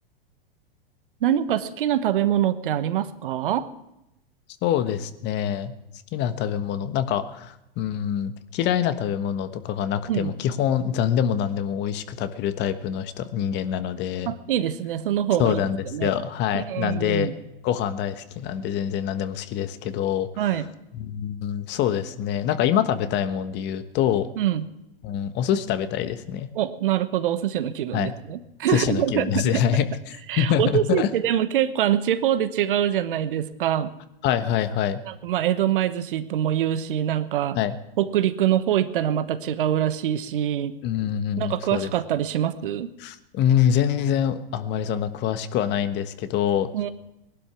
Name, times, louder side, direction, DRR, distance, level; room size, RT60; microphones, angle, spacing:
voice 1, 1.2-3.7 10.1-10.3 14.3-15.6 15.9-16.1 16.5-17.3 20.4-20.7 24.4-24.7 26.5-29.7 30.3-33.9 35.1-37.6 38.0-40.8 41.4-42.9 46.7-46.9, right 11 dB, 65° right, 12 dB, 1.2 m, -24 dB
voice 2, 4.6-5.7 6.1-14.3 15.4-17.3 17.6-20.3 20.9-24.3 25.0-26.5 27.9-28.1 28.7-31.1 34.2-35.0 37.5-37.7 40.8-41.9 43.0-46.7, left 9 dB, 40° left, 11 dB, 1.3 m, -25 dB
19.5 x 12.0 x 6.1 m, 0.87 s
hypercardioid pair, 100°, 29 cm